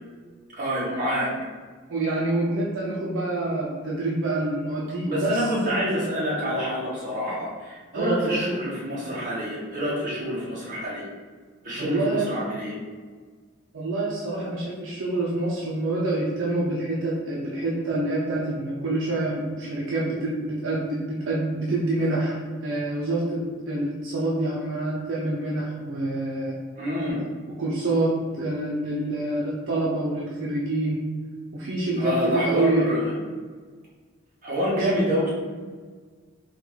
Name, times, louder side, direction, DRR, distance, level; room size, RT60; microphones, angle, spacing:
voice 1, 0.5-1.3 5.0-11.0 11.6-12.7 26.8-27.2 32.0-33.1 34.4-35.3, equal, 40° right, -6 dB, 1.0 m, -27 dB
voice 2, 1.9-5.5 7.9-8.4 11.8-12.4 13.7-23.4 23.7-26.5 27.6-31.1 31.5-33.0 34.8-34.9, right 2 dB, 75° right, -5 dB, 0.5 m, -27 dB
3.7 x 2.3 x 3.0 m, 1.5 s
head